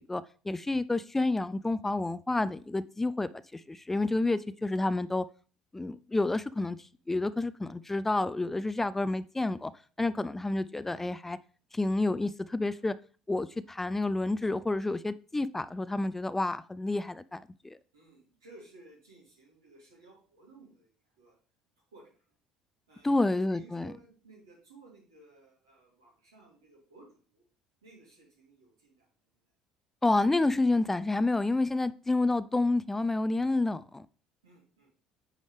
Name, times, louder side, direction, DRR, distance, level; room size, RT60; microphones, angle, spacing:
voice 1, 0.0-5.3 5.7-9.7 10.0-11.4 11.7-13.0 13.3-17.8 23.0-23.9 30.0-34.1, left 2 dB, 15° left, 16 dB, 0.3 m, -29 dB
voice 2, 17.9-21.4 21.9-22.4 22.9-27.4 27.8-29.1 34.4-34.9, right 2 dB, 80° right, -3 dB, 3.0 m, -57 dB
9.1 x 4.9 x 3.3 m, 0.40 s
figure-of-eight pair, 60°, 2 cm